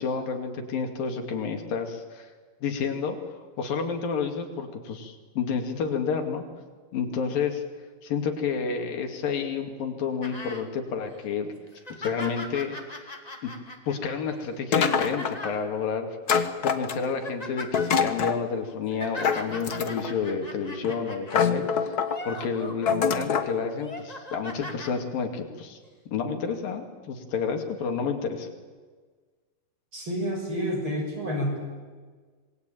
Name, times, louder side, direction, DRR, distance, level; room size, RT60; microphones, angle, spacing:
voice 1, 0.0-2.3 2.6-6.4 6.9-7.6 8.0-11.5 12.0-12.8 13.4-13.5 13.9-16.1 16.6-22.0 22.3-25.8 26.1-28.5, left 6 dB, 90° left, 4 dB, 4.2 m, -30 dB
sound 1, 10.2-10.6 11.1-11.2 11.7-15.6 16.4-16.6 16.9-17.9 18.7-21.5 22.0-23.3 23.7-24.9 25.8-25.9, left 1 dB, 15° left, 2.0 m, -40 dB
sound 2, 14.7-15.5 16.3-17.2 17.7-18.4 19.2-20.2 20.8-20.9 21.3-22.2 22.9-23.5, left 6 dB, 75° left, 0.8 m, -25 dB
voice 2, 29.9-31.6, equal, 35° right, 2 dB, 6.6 m, -29 dB
26.0 x 21.0 x 9.2 m, 1.5 s
omnidirectional pair, 3.9 m